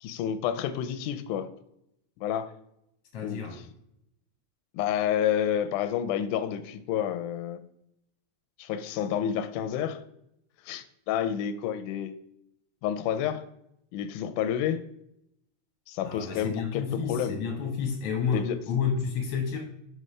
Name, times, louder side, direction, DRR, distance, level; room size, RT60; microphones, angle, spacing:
voice 1, 0.0-1.5 2.2-2.5 3.2-3.4 4.7-7.6 8.6-10.0 10.7-12.1 12.8-13.4 13.9-14.8 15.9-17.4 18.3-18.6, left 9 dB, 90° left, 11 dB, 2.1 m, -29 dB
voice 2, 3.1-3.6 16.0-19.6, left 6 dB, 65° left, 2 dB, 1.6 m, -30 dB
6.4 x 5.3 x 3.2 m, 0.78 s
omnidirectional pair, 3.5 m